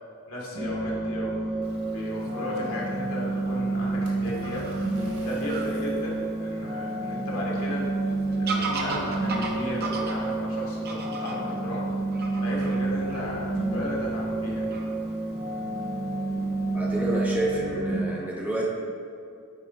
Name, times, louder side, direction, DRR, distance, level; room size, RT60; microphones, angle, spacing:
voice 1, 0.3-1.4 1.9-4.7 5.2-7.9 8.4-11.9 12.4-14.9, left 1 dB, 70° left, -4 dB, 1.7 m, -35 dB
sound 1, 0.5-18.0, right 2 dB, 30° right, 1.1 m, -29 dB
Fowl / Bird vocalization bird call bird song, 1.6-17.4, right 3 dB, 45° right, 0.8 m, -40 dB
Water / Splash splatter, 4.1-6.1, right 1 dB, 80° right, 1.5 m, -47 dB
voice 2, 16.7-18.7, right 1 dB, 5° right, -4 dB, 0.8 m, -28 dB
9.4 x 4.2 x 4.4 m, 2.5 s
head